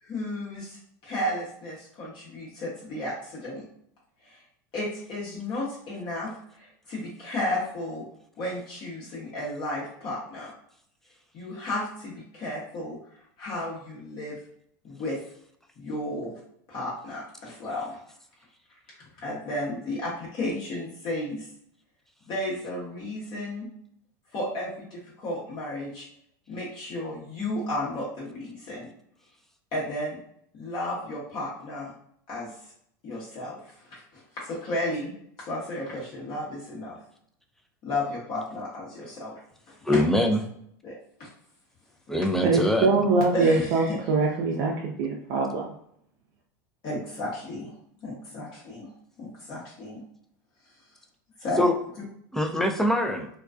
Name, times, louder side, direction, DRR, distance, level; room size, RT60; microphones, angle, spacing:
voice 1, 0.0-3.6 4.2-4.4 4.7-8.0 8.4-10.5 11.3-13.0 13.4-14.4 14.8-15.2 15.8-16.3 16.7-18.0 19.2-21.5 22.3-23.7 24.3-26.1 26.5-28.9 29.7-30.2 30.5-31.9 32.3-32.5 33.0-35.1 35.4-37.0 37.8-39.4 39.7-40.0 40.8-41.3 43.3-44.0 46.8-47.7 48.0-48.9 49.2-50.0 51.4-51.7, left 1 dB, 45° left, -6 dB, 0.9 m, -33 dB
voice 2, 39.8-40.4 42.1-42.9 51.6-51.7 52.3-53.3, left 1 dB, 5° left, 3 dB, 0.4 m, -23 dB
voice 3, 42.4-45.7, right 3 dB, 55° right, -2 dB, 0.5 m, -23 dB
2.3 x 2.2 x 2.4 m, 0.69 s
hypercardioid pair, 95°, 11 cm